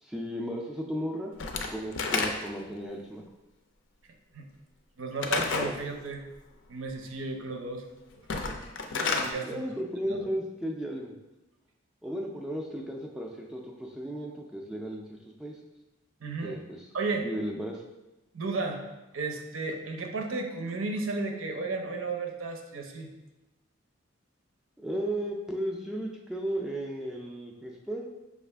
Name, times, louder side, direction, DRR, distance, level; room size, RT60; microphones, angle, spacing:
voice 1, 0.0-1.3 1.7-3.2 9.4-11.1 12.0-15.6 16.4-16.9 17.2-17.8 24.8-28.1, equal, 5° right, -1 dB, 0.3 m, -35 dB
Slam / Wood, 1.4-2.7 5.2-5.8 8.2-9.3, left 4 dB, 65° left, 0.4 m, -30 dB
voice 2, 5.0-6.2 6.7-7.8 9.0-9.6 10.1-10.2 16.2-16.6 16.9-17.3 18.3-18.8 19.1-23.1, right 3 dB, 85° right, 4 dB, 0.6 m, -33 dB
5.7 x 2.4 x 3.3 m, 1.0 s
head